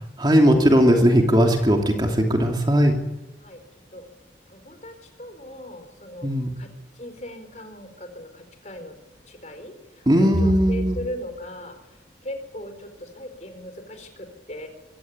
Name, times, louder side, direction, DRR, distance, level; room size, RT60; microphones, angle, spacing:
voice 1, 0.2-2.9 6.2-6.5 10.1-11.0, equal, 25° right, 2 dB, 2.8 m, -18 dB
voice 2, 4.5-6.3 6.6-6.7 6.9-9.0 9.3-11.8 12.2-14.7, left 1 dB, 40° left, 7 dB, 4.4 m, -38 dB
23.5 x 16.5 x 9.7 m, 1.1 s
head